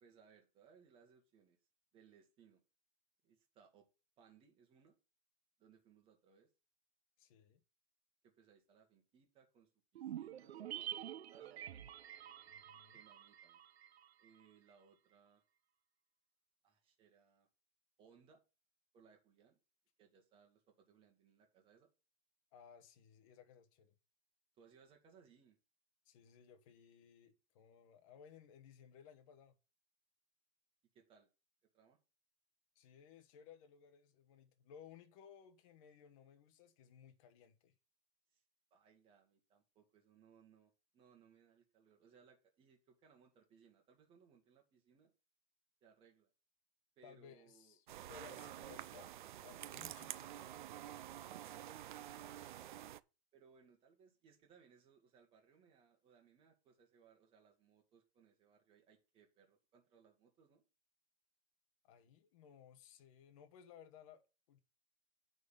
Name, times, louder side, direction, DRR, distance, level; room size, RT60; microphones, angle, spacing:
voice 1, 0.0-1.6 1.9-2.6 3.2-3.9 4.2-5.0 5.6-6.5 8.2-10.7 11.3-11.6 12.9-13.6 14.2-15.4 16.6-17.5 18.0-18.4 18.9-19.6 20.0-21.9 24.6-25.6 30.9-31.3 31.7-32.0 38.3-38.4 38.7-45.1 45.8-46.3 47.0-47.8 48.3-48.7 51.2-52.7 53.3-60.6, right 6 dB, 15° right, 1.8 m, -67 dB
voice 2, 7.2-7.6 12.5-13.0 22.5-23.9 26.0-29.6 32.7-37.7 47.0-49.1 49.4-50.6 61.8-64.6, left 8 dB, 35° left, 1.2 m, -60 dB
sound 1, 10.0-14.5 14.7-14.8, right 11 dB, 85° right, 0.8 m, -48 dB
sound 2, 47.9-53.0, right 12 dB, 50° right, 0.5 m, -49 dB
9.4 x 4.0 x 6.7 m
hypercardioid pair, 165°, 31 cm